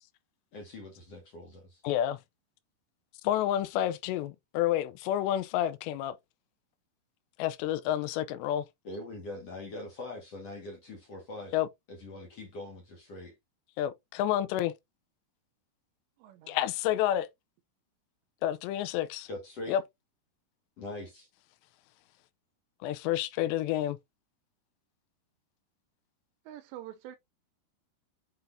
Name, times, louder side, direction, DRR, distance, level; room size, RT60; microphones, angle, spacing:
voice 1, 0.5-1.8 8.8-11.5 11.9-13.3 19.3-19.8 20.8-21.3, left 2 dB, 50° left, 2.0 m, -42 dB
voice 2, 1.8-2.2 3.2-6.2 7.4-8.6 11.5-11.7 13.8-14.7 16.5-17.3 18.4-19.3 19.7-19.8 22.8-24.0, left 12 dB, 90° left, 2.8 m, -29 dB
voice 3, 16.2-16.6 26.5-27.2, right 12 dB, 90° right, 2.9 m, -45 dB
7.9 x 5.4 x 2.6 m
omnidirectional pair, 4.9 m